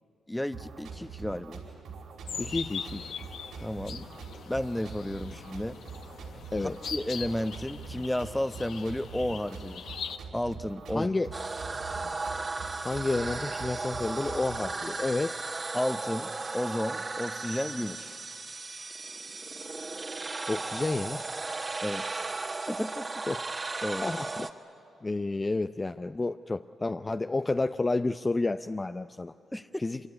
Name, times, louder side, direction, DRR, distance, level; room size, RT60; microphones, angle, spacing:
voice 1, 0.3-1.6 3.6-4.1 4.5-5.8 6.6-9.8 10.3-11.1 15.7-18.1 21.8-22.3 22.7-23.1 23.8-24.1 29.5-29.8, left 1 dB, 10° left, 11 dB, 1.0 m, -32 dB
sound 1, 0.5-14.6, right 5 dB, 80° right, 5.0 m, -44 dB
sound 2, 2.3-10.2, left 7 dB, 75° left, 1.1 m, -41 dB
voice 2, 2.4-3.1 6.5-6.8 10.9-11.3 12.8-15.4 20.5-21.8 23.3-23.4 23.8-24.5 25.0-29.3 29.8-30.0, left 2 dB, 30° left, 8 dB, 0.6 m, -30 dB
sound 3, 11.3-24.5, right 3 dB, 40° right, 1.7 m, -36 dB
25.0 x 24.0 x 9.8 m, 2.4 s
supercardioid pair, 50°, 0 cm